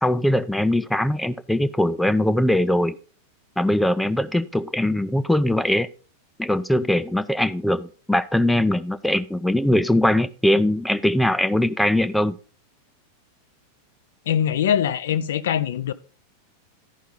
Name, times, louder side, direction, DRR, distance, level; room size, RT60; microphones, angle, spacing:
voice 1, 0.0-3.0 3.6-5.9 6.4-12.3, left 1 dB, 5° left, 0.5 m, -21 dB
voice 2, 14.3-15.9, left 9 dB, 60° left, 0.6 m, -22 dB
13.0 x 5.6 x 3.9 m
figure-of-eight pair, 90°, 0 cm